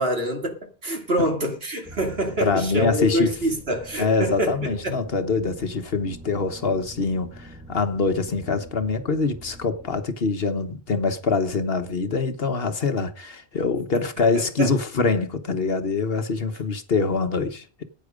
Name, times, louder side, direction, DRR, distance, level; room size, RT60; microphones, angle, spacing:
voice 1, 0.0-5.0 14.2-14.7, right 1 dB, 70° right, 3.0 m, -26 dB
sound 1, 1.8-10.1, right 1 dB, 5° right, 2.3 m, -45 dB
voice 2, 2.4-3.4 4.0-17.8, left 4 dB, 65° left, 1.5 m, -24 dB
15.0 x 9.6 x 5.1 m
omnidirectional pair, 1.1 m